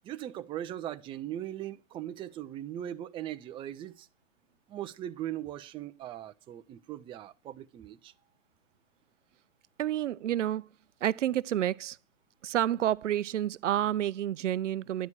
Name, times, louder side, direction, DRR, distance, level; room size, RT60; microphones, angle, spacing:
voice 1, 0.0-4.1 4.7-8.1, right 12 dB, 15° right, 0.6 m, -39 dB
voice 2, 9.8-10.7 11.0-12.0 12.4-15.1, right 12 dB, 70° right, 0.6 m, -29 dB
11.0 x 10.5 x 4.7 m
hypercardioid pair, 125°, 38 cm